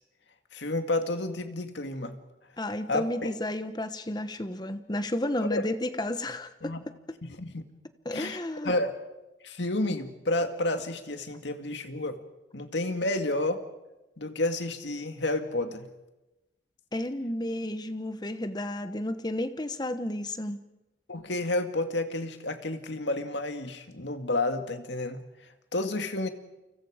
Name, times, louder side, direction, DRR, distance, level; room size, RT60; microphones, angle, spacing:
voice 1, 0.5-2.2 2.9-3.3 5.5-5.7 6.6-6.8 7.2-7.6 8.1-8.9 9.4-12.2 12.5-13.6 14.2-15.9 21.1-25.2 25.7-26.3, left 2 dB, 75° left, 7 dB, 2.1 m, -30 dB
voice 2, 2.6-6.7 7.1-7.2 8.0-8.7 16.9-20.6, left 1 dB, 20° left, 10 dB, 1.1 m, -32 dB
29.5 x 25.5 x 5.1 m, 1.0 s
head